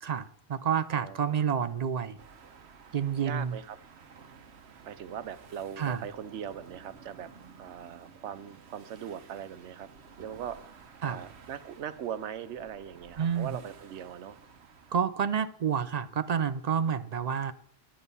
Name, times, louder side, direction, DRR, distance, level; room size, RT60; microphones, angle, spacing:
voice 1, 0.0-2.2 2.9-3.6 5.8-6.0 11.0-11.2 13.2-13.6 14.9-17.5, right 7 dB, 55° right, 0.4 m, -29 dB
voice 2, 0.9-1.4 3.2-3.8 4.8-7.3 7.6-9.9 10.2-14.4, right 9 dB, 90° right, 1.0 m, -40 dB
sound 1, 2.2-15.0, right 6 dB, 70° right, 1.1 m, -53 dB
10.0 x 8.6 x 5.4 m
omnidirectional pair, 1.2 m